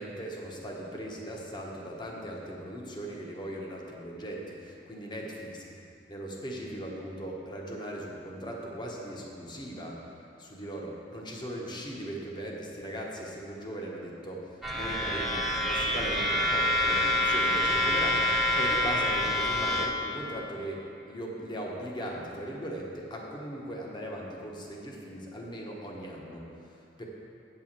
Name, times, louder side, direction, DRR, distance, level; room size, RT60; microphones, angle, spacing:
voice 1, 0.0-5.5 6.1-10.0 10.4-27.0, right 1 dB, 25° left, -2 dB, 1.1 m, -38 dB
sound 1, 14.6-19.9, left 1 dB, ahead, 0.8 m, -27 dB
8.5 x 4.8 x 7.4 m, 2.7 s
head